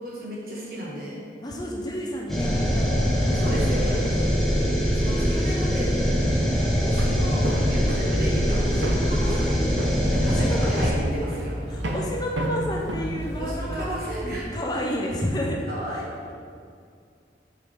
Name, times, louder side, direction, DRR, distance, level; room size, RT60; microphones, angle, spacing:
voice 1, 0.0-1.2 3.3-3.9 4.9-5.9 6.8-9.8 10.1-11.6 13.4-15.0 15.7-16.4, right 1 dB, 50° right, -6 dB, 1.6 m, -34 dB
voice 2, 1.4-2.9 3.2-4.7 10.2-11.0 11.7-13.9 14.5-15.6 15.9-16.0, equal, 20° left, -1 dB, 0.5 m, -31 dB
sound 1, 2.3-10.9, equal, ahead, 0.9 m, -23 dB
sound 2, 2.7-14.4, equal, 35° right, 0.6 m, -35 dB
Walk footsteps, 6.8-13.9, right 1 dB, 85° right, 0.7 m, -34 dB
6.8 x 4.8 x 3.6 m, 2.2 s
head